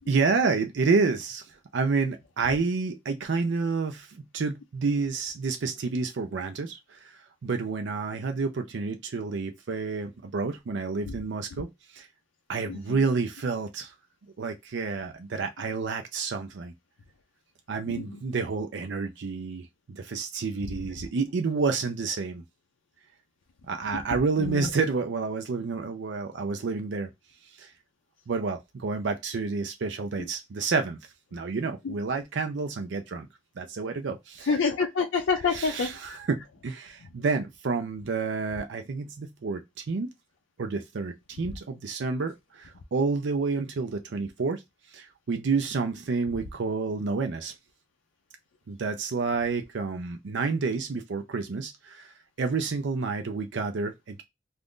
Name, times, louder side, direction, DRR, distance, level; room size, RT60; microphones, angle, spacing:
voice 1, 0.1-11.7 11.9-12.1 12.5-13.9 14.4-16.7 17.7-22.4 23.7-27.1 27.4-27.7 28.3-31.0 31.3-33.3 33.6-34.5 35.5-40.1 40.6-44.6 44.9-47.5 48.7-54.2, right 4 dB, 65° right, 0.4 m, -29 dB
voice 2, 12.7-13.0 17.9-18.2 24.4-24.7 30.2-30.3 31.8-32.0 34.5-35.9, left 5 dB, 90° left, 0.4 m, -28 dB
2.5 x 2.5 x 3.5 m
head